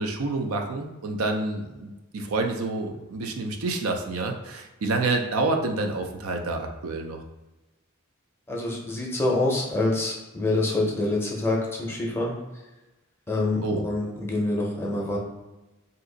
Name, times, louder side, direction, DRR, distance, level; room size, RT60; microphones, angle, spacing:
voice 1, 0.0-7.2 13.6-13.8, right 3 dB, 80° right, 4 dB, 0.4 m, -28 dB
voice 2, 8.5-12.3 13.3-15.2, left 2 dB, 10° left, -2 dB, 0.6 m, -26 dB
2.7 x 2.4 x 3.8 m, 1.1 s
head